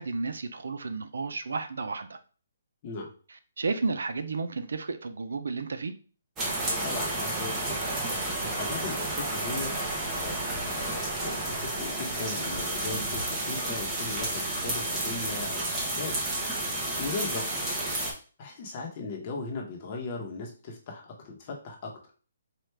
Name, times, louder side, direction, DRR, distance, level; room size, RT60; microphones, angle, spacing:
voice 1, 0.0-2.2 3.3-5.9, right 4 dB, 85° right, 0.5 m, -32 dB
sound 1, 6.4-18.1, right 1 dB, 10° right, 0.8 m, -31 dB
voice 2, 6.6-7.8 8.1-17.5 18.4-21.9, left 3 dB, 30° left, 1.0 m, -38 dB
4.6 x 2.4 x 3.3 m
hypercardioid pair, 170°, 0 cm